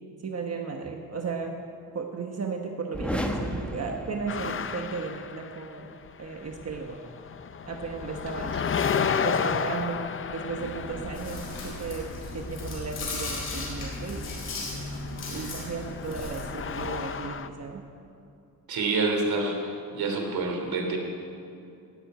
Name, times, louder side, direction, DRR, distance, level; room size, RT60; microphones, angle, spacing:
voice 1, 0.2-1.5 1.9-5.9 6.2-7.0 7.7-8.7 9.2-10.0 10.3-12.0 12.3-14.3 15.3-17.8, right 5 dB, 45° right, 2 dB, 1.2 m, -35 dB
sound 1, 2.9-4.9, equal, 5° left, 1.2 m, -33 dB
sound 2, 4.3-6.1 6.4-17.5, left 6 dB, 35° left, 0.5 m, -33 dB
Chewing mastication, 10.5-16.9, left 2 dB, 85° left, 4.3 m, -36 dB
voice 2, 18.7-21.0, right 3 dB, 80° right, 1 dB, 3.1 m, -27 dB
17.0 x 7.8 x 9.2 m, 2.6 s
wide cardioid pair, 135°, 36 cm